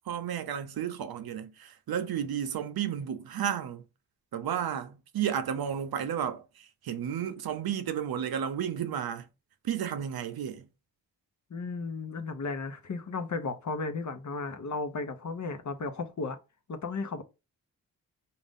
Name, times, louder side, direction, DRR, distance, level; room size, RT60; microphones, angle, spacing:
voice 1, 0.1-3.9 4.3-9.3 9.6-10.7, right 9 dB, 65° right, 0.6 m, -32 dB
voice 2, 11.5-16.4 16.7-17.2, left 3 dB, 45° left, 0.8 m, -34 dB
4.0 x 2.4 x 3.6 m
supercardioid pair, 45°, 40 cm